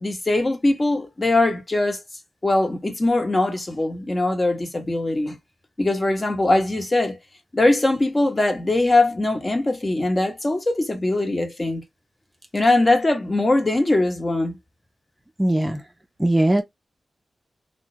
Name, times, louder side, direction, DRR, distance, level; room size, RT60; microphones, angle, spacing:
voice 1, 0.0-2.0 2.4-5.4 5.8-7.2 7.5-11.8 12.5-14.6, left 2 dB, 30° left, 0.9 m, -21 dB
voice 2, 15.4-15.8 16.2-16.6, right 1 dB, 15° right, 0.5 m, -19 dB
2.3 x 2.1 x 2.7 m
cardioid pair, 70°, 0 cm